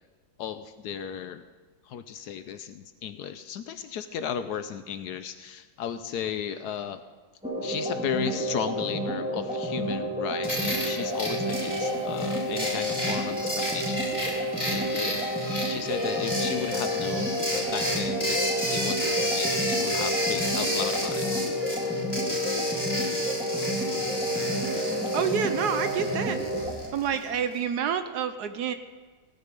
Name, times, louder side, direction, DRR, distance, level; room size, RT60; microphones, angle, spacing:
voice 1, 0.4-1.4 1.8-7.0 7.6-14.1 14.7-15.3 15.6-18.4 18.7-21.3, left 8 dB, 70° left, 10 dB, 1.0 m, -35 dB
sound 1, 7.4-26.7, equal, 5° right, 1.9 m, -30 dB
sound 2, 10.4-27.4, equal, 10° left, 3.3 m, -32 dB
voice 2, 25.1-26.4 26.9-28.7, right 7 dB, 65° right, 10 dB, 1.1 m, -28 dB
16.0 x 9.9 x 5.3 m, 1.4 s
omnidirectional pair, 2.0 m